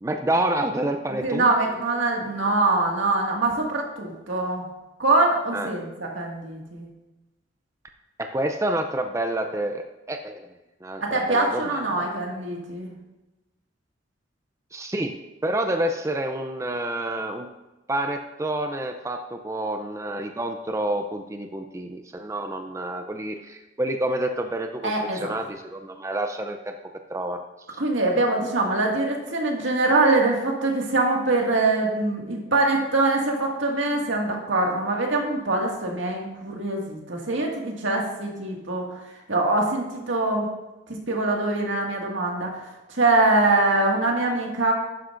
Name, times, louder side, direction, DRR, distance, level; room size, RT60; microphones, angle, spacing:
voice 1, 0.0-1.5 5.5-5.7 8.2-10.5 10.8-12.1 14.7-15.1 15.4-17.5 17.9-26.7 27.1-27.4 27.7-27.8, right 1 dB, 15° right, 5 dB, 0.5 m, -28 dB
voice 2, 1.2-4.6 5.0-6.9 11.0-12.9 24.8-25.4 27.8-38.9 39.3-40.5 40.9-42.5 42.9-44.7, right 2 dB, 85° right, 0 dB, 2.0 m, -23 dB
12.0 x 9.6 x 2.6 m, 1.0 s
head